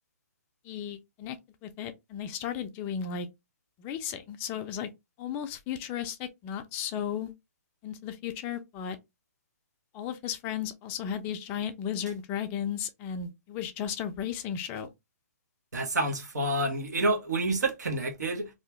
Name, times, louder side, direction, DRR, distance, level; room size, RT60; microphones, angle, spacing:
voice 1, 0.6-1.4 1.6-3.3 3.8-4.9 5.2-7.3 7.8-9.0 9.9-14.9, left 8 dB, 20° left, 0.3 m, -35 dB
voice 2, 15.7-18.5, right 2 dB, 85° right, 1.3 m, -28 dB
2.8 x 2.4 x 3.4 m
hypercardioid pair, 150°, 9 cm